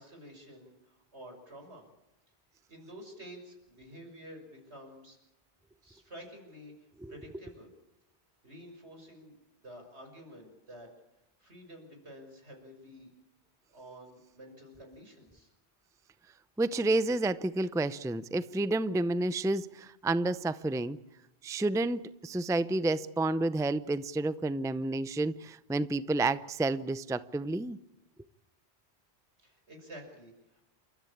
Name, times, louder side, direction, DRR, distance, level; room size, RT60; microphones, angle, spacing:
voice 1, 0.0-1.9 2.7-5.2 5.8-7.7 8.4-10.9 11.4-13.1 13.7-15.5 29.4-30.6, equal, 80° right, 6.3 m, -50 dB
voice 2, 16.6-21.0 21.4-27.8, right 2 dB, 5° right, 0.5 m, -30 dB
29.0 x 14.0 x 8.6 m
omnidirectional pair, 1.1 m